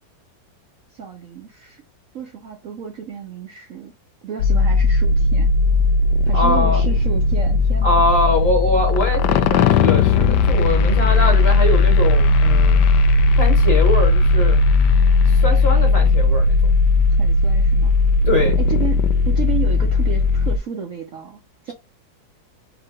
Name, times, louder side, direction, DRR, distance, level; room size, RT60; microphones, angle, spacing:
voice 1, 0.9-1.8 2.1-3.9 4.2-5.6 6.3-8.1 17.2-17.9 18.6-21.7, right 8 dB, 55° right, 1.0 m, -32 dB
sound 1, 4.4-20.6, left 3 dB, 75° left, 1.1 m, -16 dB
voice 2, 6.3-6.9 7.8-12.8 13.4-14.6 15.3-16.7 18.3-18.6, left 1 dB, 35° left, 1.9 m, -22 dB
4.8 x 2.8 x 3.5 m
omnidirectional pair, 1.9 m